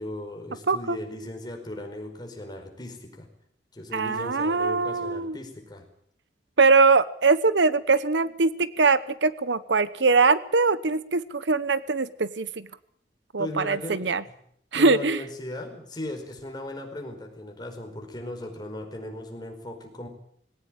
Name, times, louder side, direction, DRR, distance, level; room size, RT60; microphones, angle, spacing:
voice 1, 0.0-3.3 3.7-5.9 13.4-14.3 14.7-20.1, left 1 dB, 25° left, 3 dB, 4.9 m, -37 dB
voice 2, 0.7-1.0 3.9-5.4 6.6-12.7 13.3-14.2 14.7-15.2, right 4 dB, 85° right, 16 dB, 1.0 m, -22 dB
20.0 x 17.5 x 8.9 m, 0.68 s
head